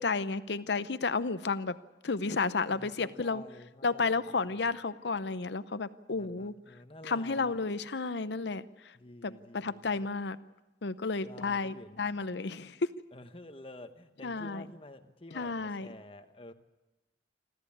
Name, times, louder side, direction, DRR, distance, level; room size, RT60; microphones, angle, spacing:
voice 1, 0.0-1.7 2.0-3.4 3.8-6.5 7.0-8.6 9.2-10.4 10.8-12.8 14.2-14.6 15.3-15.9, left 4 dB, 70° left, 14 dB, 0.7 m, -32 dB
voice 2, 2.7-4.7 6.1-7.6 8.9-10.1 11.2-12.1 13.1-16.5, left 1 dB, 30° left, 8 dB, 1.3 m, -50 dB
26.5 x 14.0 x 8.6 m, 1.1 s
head